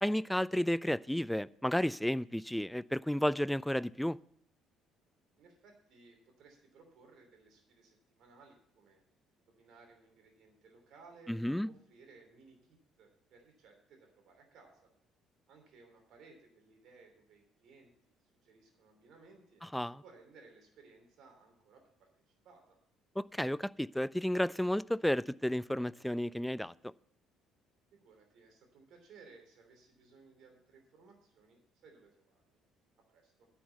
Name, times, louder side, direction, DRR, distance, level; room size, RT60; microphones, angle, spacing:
voice 1, 0.0-4.2 11.3-11.7 19.7-20.0 23.2-26.7, left 1 dB, 5° left, 0.3 m, -32 dB
voice 2, 5.4-9.0 9.4-14.9 15.5-19.6 20.0-22.8 27.9-32.6 33.1-33.5, right 4 dB, 60° right, 3.1 m, -60 dB
10.0 x 5.8 x 8.3 m
hypercardioid pair, 50°, 0 cm